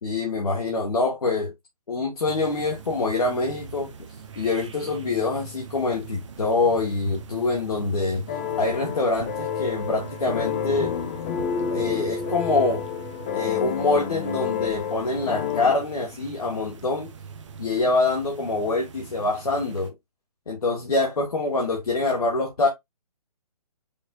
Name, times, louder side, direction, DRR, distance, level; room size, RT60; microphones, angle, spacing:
voice 1, 0.0-1.5 1.9-3.9 4.4-8.2 8.6-10.9 11.7-12.8 13.3-17.1 17.6-19.9 20.5-22.7, left 3 dB, 65° left, 1.4 m, -25 dB
sound 1, 2.3-19.9, right 6 dB, 50° right, 0.7 m, -41 dB
sound 2, 8.3-15.7, left 8 dB, 15° left, 0.4 m, -30 dB
5.3 x 3.2 x 2.2 m
figure-of-eight pair, 135°, 20 cm